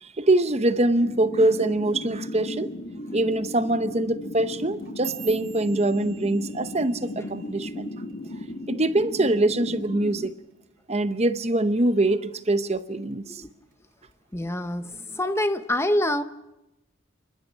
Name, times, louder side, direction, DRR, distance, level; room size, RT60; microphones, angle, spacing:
voice 1, 0.0-2.7 3.1-7.9 8.7-10.3 10.9-13.4, right 2 dB, 30° right, 0.8 m, -24 dB
sound 1, 1.0-10.3, left 1 dB, 40° left, 1.6 m, -36 dB
sound 2, 4.7-9.0 9.3-9.7 10.1-10.5 10.9-11.1 11.7-12.1 12.5-13.3 13.7-14.1 14.9-15.0, right 17 dB, 55° right, 2.5 m, -44 dB
voice 2, 14.3-16.2, left 1 dB, 10° left, 0.7 m, -26 dB
28.0 x 12.0 x 10.0 m
head